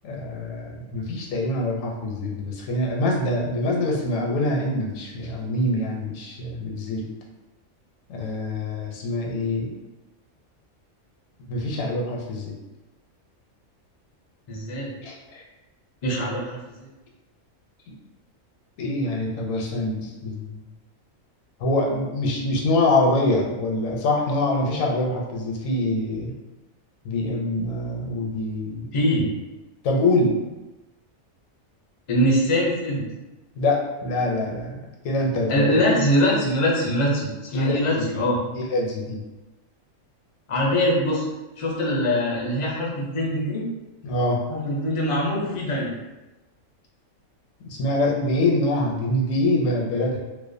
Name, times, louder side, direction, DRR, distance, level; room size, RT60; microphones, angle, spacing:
voice 1, 0.0-7.1 8.1-9.7 11.5-12.5 15.0-15.4 18.8-20.6 21.6-26.3 27.0-28.9 29.8-30.5 33.6-34.8 35.0-35.8 37.5-38.2 38.5-39.2 44.0-44.4 47.6-50.2, left 2 dB, 80° left, -1 dB, 0.9 m, -25 dB
voice 2, 14.5-14.9 16.0-16.6 28.9-29.3 32.1-33.0 35.5-38.4 40.5-41.2 41.6-43.6 44.5-45.9, equal, 55° left, -4 dB, 0.3 m, -23 dB
2.4 x 2.2 x 2.5 m, 1.1 s
omnidirectional pair, 1.4 m